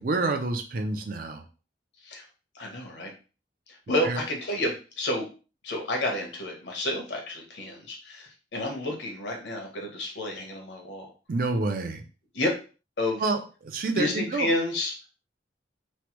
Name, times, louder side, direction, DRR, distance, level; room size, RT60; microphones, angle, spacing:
voice 1, 0.0-1.4 4.0-4.2 11.3-12.0 13.2-14.5, right 3 dB, 50° right, 5 dB, 0.4 m, -28 dB
voice 2, 2.5-3.1 3.7-5.3 5.6-11.1 12.3-12.5 13.0-13.2 14.0-15.1, left 1 dB, 75° left, 0 dB, 1.0 m, -30 dB
3.1 x 2.1 x 3.0 m, 0.34 s
head